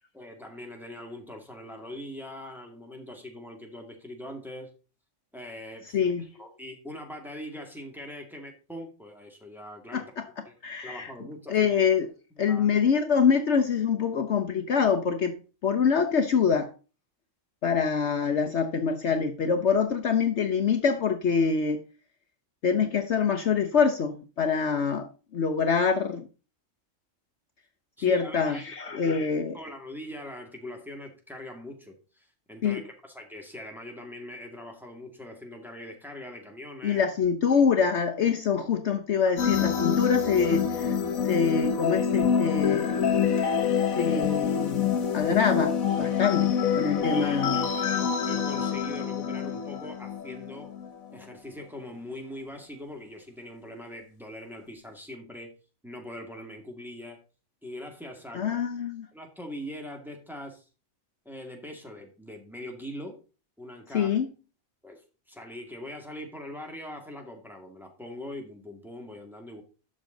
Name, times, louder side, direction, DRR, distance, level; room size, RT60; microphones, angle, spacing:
voice 1, 0.1-4.7 5.3-10.1 10.5-10.6 10.8-11.7 12.3-12.9 28.0-29.3 29.5-37.0 39.2-39.4 47.1-50.7 51.1-55.5 55.8-57.2 57.6-58.5 59.1-60.6 61.3-63.2 63.6-64.2 64.8-69.6, left 1 dB, ahead, 1 dB, 2.1 m, -42 dB
voice 2, 5.9-6.2 9.9-10.3 10.6-11.1 11.5-12.1 12.4-15.4 15.6-16.7 17.6-21.8 22.6-26.3 28.0-29.5 32.6-32.8 36.8-41.0 41.2-43.1 43.4-43.5 44.0-47.6 58.3-59.1 63.9-64.3, left 6 dB, 60° left, 7 dB, 1.1 m, -25 dB
sound 1, 39.4-50.9, left 7 dB, 80° left, 1.6 m, -26 dB
12.0 x 6.5 x 3.9 m, 0.34 s
omnidirectional pair, 1.4 m